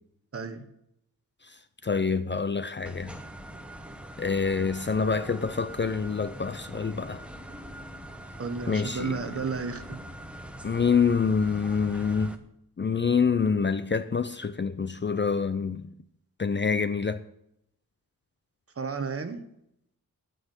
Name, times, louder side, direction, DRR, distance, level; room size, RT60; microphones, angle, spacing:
voice 1, 0.3-0.6 8.4-10.0 18.8-19.4, right 4 dB, 40° right, 1.3 m, -32 dB
voice 2, 1.4-3.2 4.2-7.2 8.7-9.2 10.6-12.3 12.8-15.9 16.4-17.2, left 5 dB, 30° left, 0.5 m, -26 dB
sound 1, 2.9-12.4, right 1 dB, 5° right, 1.0 m, -43 dB
11.0 x 9.7 x 8.2 m
wide cardioid pair, 180°, 35 cm